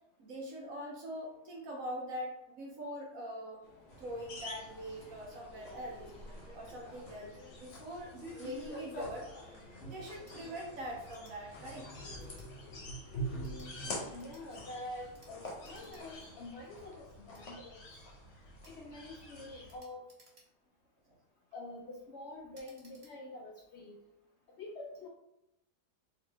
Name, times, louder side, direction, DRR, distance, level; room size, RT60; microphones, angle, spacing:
voice 1, 0.2-3.6 4.0-6.1 6.5-9.3 9.8-11.9, equal, 65° right, -1 dB, 1.0 m, -43 dB
sound 1, 3.6-16.3, left 1 dB, 30° left, 0.9 m, -52 dB
sound 2, 3.9-19.8, equal, 50° left, 1.1 m, -46 dB
sound 3, 10.1-10.4 11.1-11.4 12.2-12.5 13.3-13.7 14.2-14.4 15.1-15.3 15.6-16.0 16.4-16.5 17.3-17.4 18.6-18.8 19.7-20.7 21.3-21.6 22.5-23.1, right 2 dB, 45° right, 1.3 m, -64 dB
voice 2, 13.3-17.8 18.6-20.1 21.5-24.0 24.5-25.1, left 2 dB, 75° left, -1 dB, 0.6 m, -47 dB
3.8 x 2.8 x 3.3 m, 0.85 s
omnidirectional pair, 1.7 m